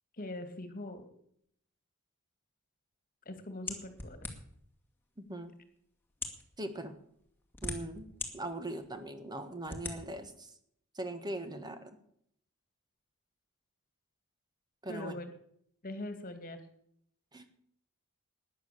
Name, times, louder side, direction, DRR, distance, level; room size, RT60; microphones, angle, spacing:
voice 1, 0.2-1.1 3.3-4.3 14.9-15.3 15.8-16.6, left 1 dB, 40° left, 9 dB, 2.1 m, -42 dB
sound 1, 3.7-4.6 5.4-5.5 6.1-6.4 7.2-8.3 8.8-8.9 9.7-10.0, left 3 dB, 10° left, 2.2 m, -39 dB
voice 2, 6.6-6.9 7.6-8.1 8.3-10.5 10.9-11.9 14.8-15.2 17.3-17.4, right 1 dB, 20° right, 9 dB, 1.5 m, -40 dB
13.0 x 10.0 x 6.8 m, 0.69 s
head